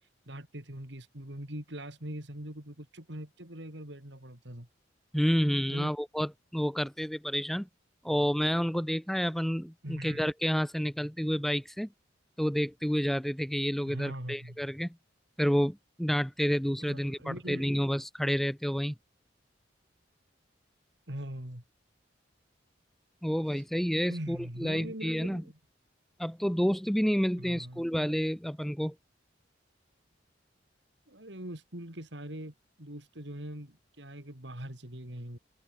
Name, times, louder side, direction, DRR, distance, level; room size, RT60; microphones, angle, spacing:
voice 1, 0.3-4.7 5.7-5.9 9.8-10.2 13.9-14.6 16.8-17.8 21.1-21.6 23.5-23.6 24.1-25.6 27.4-27.9 31.1-35.4, right 1 dB, 65° right, 4.7 m, -42 dB
voice 2, 5.1-7.7 8.0-11.9 12.4-14.9 15.4-18.9 23.2-25.4 26.2-28.9, equal, ahead, 0.6 m, -29 dB
head